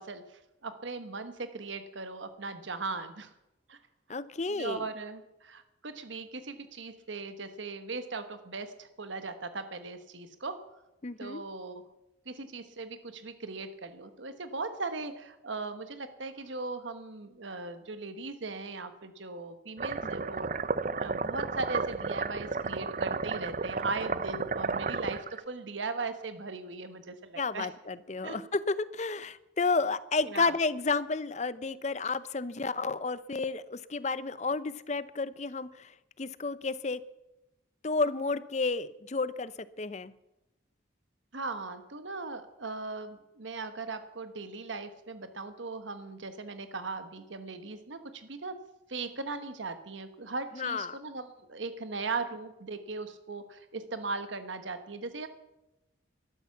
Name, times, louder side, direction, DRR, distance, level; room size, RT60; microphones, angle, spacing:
voice 1, 0.0-3.3 3.7-3.8 4.5-10.6 11.2-11.8 12.3-20.5 21.0-27.7 28.2-28.4 30.2-30.6 41.3-48.5 48.9-55.3, right 3 dB, 75° right, 10 dB, 1.2 m, -38 dB
voice 2, 4.1-4.8 11.0-11.4 27.4-35.9 36.2-37.0 37.8-39.5 39.8-40.1 50.6-51.0, left 4 dB, 35° left, 16 dB, 0.6 m, -31 dB
sound 1, 19.8-25.4, right 4 dB, 40° right, 0.6 m, -33 dB
13.0 x 12.5 x 7.1 m, 0.94 s
head